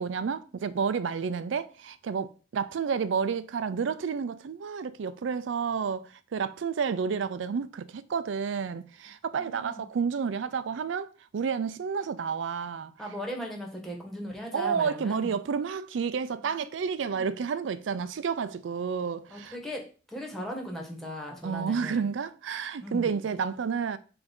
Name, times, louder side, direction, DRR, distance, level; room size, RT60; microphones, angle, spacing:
voice 1, 0.0-12.9 14.5-19.6 21.4-24.0, right 6 dB, 80° right, 0.4 m, -30 dB
voice 2, 9.3-9.8 13.0-15.3 16.4-16.5 17.1-17.3 19.3-19.8 20.1-22.1 22.8-23.2, equal, ahead, 1.4 m, -38 dB
6.9 x 2.6 x 5.3 m
head